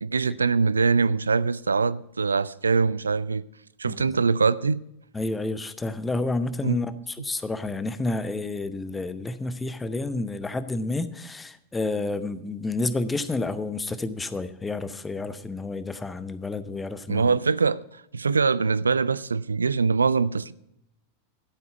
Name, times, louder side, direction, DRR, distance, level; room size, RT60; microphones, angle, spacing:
voice 1, 0.0-3.4 3.8-4.8 6.6-6.8 17.1-17.8 18.1-20.5, right 4 dB, 75° right, 0.4 m, -23 dB
voice 2, 5.1-17.3, left 2 dB, 10° left, 0.9 m, -30 dB
12.5 x 8.4 x 5.6 m
figure-of-eight pair, 90°, 0 cm